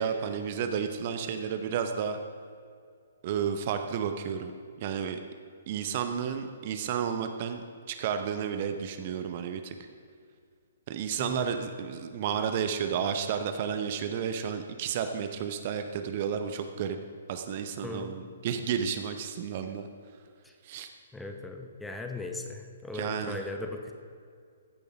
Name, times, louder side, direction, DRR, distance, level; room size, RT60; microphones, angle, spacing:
voice 1, 0.0-2.2 3.2-4.5 4.8-5.2 5.7-7.6 7.9-9.7 10.9-17.0 17.3-19.9 20.6-20.9 22.9-23.4, right 7 dB, 40° right, 7 dB, 0.7 m, -32 dB
voice 2, 11.2-11.6 17.8-18.2 20.4-20.5 21.1-23.9, left 2 dB, 5° left, 4 dB, 0.9 m, -38 dB
14.5 x 6.8 x 5.2 m, 2.2 s
figure-of-eight pair, 125°, 0 cm